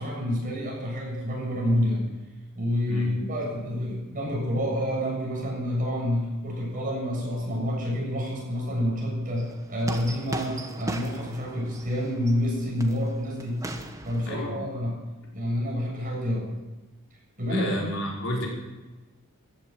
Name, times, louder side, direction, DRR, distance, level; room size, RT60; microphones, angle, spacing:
voice 1, 0.0-2.1 2.6-13.6 14.0-15.0 15.3-16.5 17.4-17.8, equal, 40° right, -2 dB, 7.2 m, -28 dB
voice 2, 2.8-3.2 14.3-14.6 17.5-18.5, equal, 65° left, -3 dB, 5.3 m, -32 dB
sound 1, 9.4-14.3, right 1 dB, 15° right, 1.2 m, -38 dB
15.0 x 12.0 x 7.8 m, 1.1 s
head